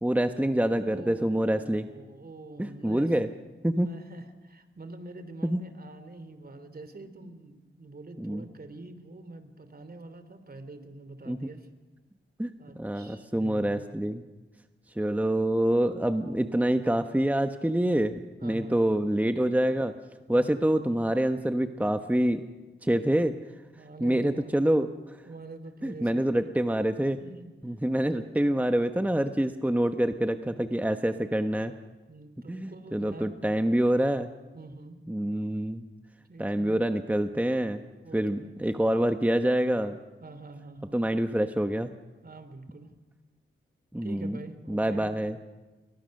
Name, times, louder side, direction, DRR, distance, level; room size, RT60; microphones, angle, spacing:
voice 1, 0.0-1.9 2.6-3.3 3.6-3.9 5.4-5.6 8.2-8.5 11.3-11.4 12.4-12.5 12.8-14.2 14.9-19.9 20.3-22.4 22.8-23.3 24.0-25.2 25.8-27.2 27.6-31.7 32.5-34.3 35.1-35.8 36.4-37.8 38.1-40.0 40.9-41.9 43.9-44.4 44.7-45.4, right 1 dB, 5° right, 7 dB, 1.2 m, -26 dB
voice 2, 0.7-3.1 3.7-11.7 12.6-13.9 18.4-19.0 20.3-20.6 23.7-24.5 25.3-26.5 27.2-27.5 28.0-28.5 32.1-33.4 34.5-35.0 36.3-36.8 38.0-38.5 40.2-41.0 42.2-42.9 44.0-45.1, right 2 dB, 50° right, 10 dB, 3.2 m, -45 dB
30.0 x 22.5 x 6.6 m, 1.2 s
cardioid pair, 75°, 21 cm